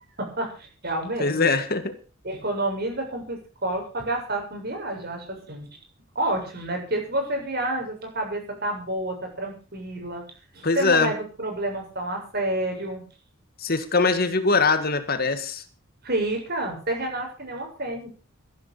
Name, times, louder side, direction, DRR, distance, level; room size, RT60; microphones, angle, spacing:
voice 1, 0.2-1.4 2.2-5.7 6.2-10.2 10.5-13.0 16.0-18.1, right 1 dB, 50° right, 3 dB, 7.2 m, -29 dB
voice 2, 1.2-2.0 10.6-11.1 13.6-15.6, left 4 dB, 45° left, 10 dB, 1.8 m, -22 dB
14.5 x 11.5 x 6.6 m, 0.37 s
head